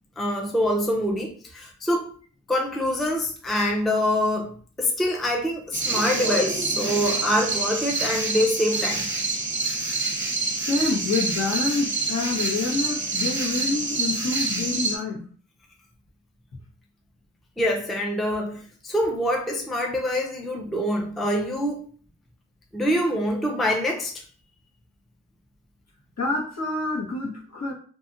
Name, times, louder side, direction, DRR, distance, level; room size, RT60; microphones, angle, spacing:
voice 1, 0.2-2.1 2.5-4.5 4.8-9.1 17.6-21.9 22.7-24.2, equal, ahead, 0.5 m, -25 dB
sound 1, 5.7-15.0, right 3 dB, 40° right, 0.7 m, -27 dB
voice 2, 10.6-15.2 26.2-27.7, left 3 dB, 55° left, 1.2 m, -27 dB
2.6 x 2.3 x 2.6 m
cardioid pair, 50°, 31 cm